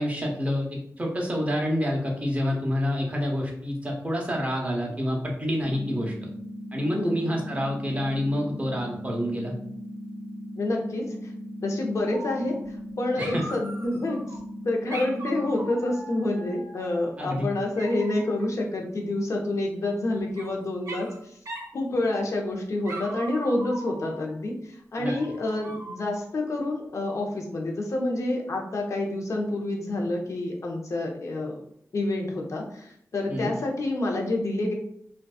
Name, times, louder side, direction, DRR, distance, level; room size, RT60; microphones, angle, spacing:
voice 1, 0.0-6.3 6.7-9.5 13.2-13.4 17.2-17.5 25.0-25.1 33.3-33.5, equal, 25° right, -1 dB, 0.7 m, -28 dB
sound 1, 5.6-15.6, equal, 10° right, 1.0 m, -38 dB
voice 2, 6.9-7.3 10.6-11.3 11.6-12.5 13.0-14.2 14.6-21.1 21.7-31.5 31.9-34.7, left 2 dB, 60° left, 0 dB, 0.6 m, -28 dB
Dog, 12.0-12.9 13.2-14.4 14.9-17.0 17.8-18.4 19.8-20.5 20.9-21.2 21.5-21.7 22.1-22.5 22.8-24.4 25.0-26.3, right 2 dB, 70° right, 0.6 m, -40 dB
2.5 x 2.3 x 2.3 m, 0.68 s
cardioid pair, 70°, 6 cm